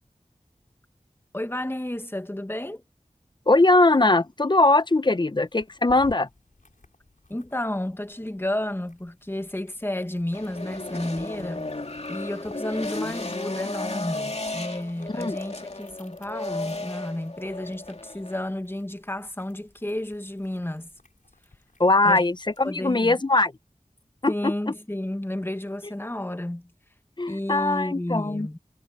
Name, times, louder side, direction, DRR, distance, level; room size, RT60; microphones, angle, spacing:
voice 1, 1.3-2.8 7.3-11.7 12.1-20.9 22.0-22.3 22.6-23.2 24.3-26.7 27.3-28.6, left 1 dB, 15° left, 1.4 m, -31 dB
voice 2, 3.5-6.3 15.2-15.4 21.8-23.5 24.2-24.5 27.2-28.5, left 2 dB, 35° left, 0.7 m, -21 dB
sound 1, 5.4-22.8, left 3 dB, 85° left, 5.7 m, -56 dB
sound 2, 10.3-18.4, left 2 dB, 55° left, 2.5 m, -34 dB
wide cardioid pair, 40°, 13 cm